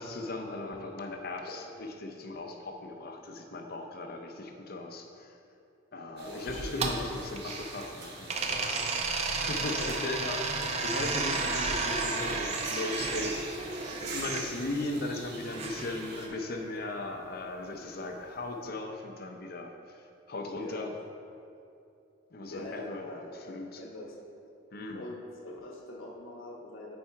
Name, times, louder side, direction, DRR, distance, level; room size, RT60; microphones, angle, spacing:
voice 1, 0.0-5.4 5.9-8.7 9.3-13.7 14.1-21.0 22.3-23.8 24.7-25.1, left 2 dB, 50° left, 3 dB, 0.7 m, -38 dB
voice 2, 6.2-6.8 9.8-9.9 20.6-20.8 22.5-23.2 23.4-24.2 24.9-27.0, left 1 dB, 85° left, -1 dB, 1.2 m, -43 dB
sound 1, 6.2-16.3, right 3 dB, 55° right, 1.0 m, -42 dB
sound 2, 6.5-7.9 8.3-14.4 15.5-16.7, right 3 dB, 30° right, 0.5 m, -33 dB
8.8 x 4.3 x 4.7 m, 2.6 s
head